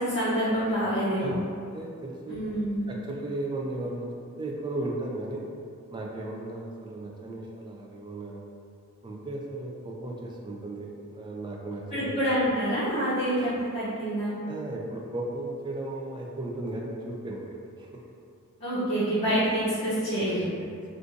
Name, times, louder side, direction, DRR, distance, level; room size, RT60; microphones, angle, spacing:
voice 1, 0.0-1.3 2.3-2.9 11.9-14.3 18.6-20.5, equal, 30° left, -12 dB, 0.7 m, -27 dB
voice 2, 1.2-1.5 1.7-2.5 2.9-4.1 4.4-5.5 5.9-8.5 9.0-12.2 14.5-18.0 20.2-20.4, right 2 dB, 20° right, -1 dB, 0.3 m, -35 dB
2.6 x 2.5 x 3.7 m, 2.3 s
head